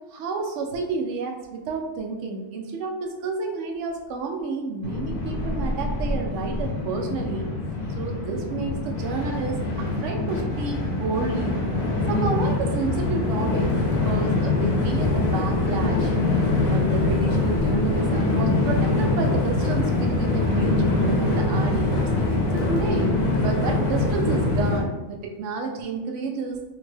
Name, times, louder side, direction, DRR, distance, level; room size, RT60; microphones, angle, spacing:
voice 1, 0.1-7.5 7.9-11.6 12.1-16.2 16.7-22.1 22.5-23.1 23.4-26.6, right 4 dB, 65° right, 3 dB, 0.8 m, -30 dB
Train, 4.8-24.8, left 2 dB, 55° left, 0.5 m, -24 dB
3.4 x 2.1 x 3.2 m, 1.1 s
omnidirectional pair, 1.5 m